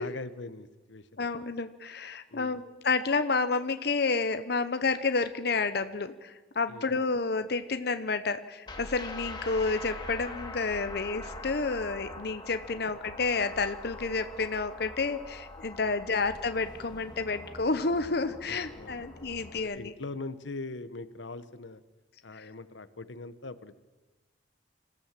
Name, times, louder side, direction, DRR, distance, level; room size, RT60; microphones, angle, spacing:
voice 1, 0.0-1.3 2.3-2.6 6.7-6.9 12.7-12.9 15.8-15.9 18.5-19.0 19.5-21.8 22.2-23.8, left 3 dB, 85° left, 14 dB, 1.0 m, -42 dB
voice 2, 1.2-19.9 22.3-22.5, left 4 dB, 60° left, 10 dB, 0.8 m, -30 dB
sound 1, 8.7-19.6, left 2 dB, 25° left, 1.9 m, -43 dB
26.0 x 15.0 x 7.4 m, 1.2 s
head